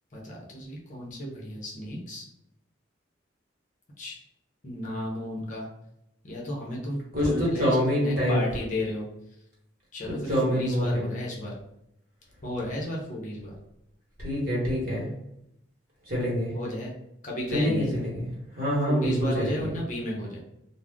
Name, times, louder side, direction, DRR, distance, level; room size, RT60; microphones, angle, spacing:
voice 1, 0.1-2.2 4.0-4.2 4.6-5.7 6.2-9.0 9.9-11.5 12.4-13.6 16.5-16.9 17.2-17.9 18.9-20.4, equal, 40° left, -3 dB, 0.6 m, -33 dB
voice 2, 7.1-8.4 10.0-11.2 14.2-15.1 16.1-16.5 17.5-19.7, equal, 45° right, -5 dB, 1.1 m, -26 dB
2.4 x 2.0 x 3.5 m, 0.81 s
head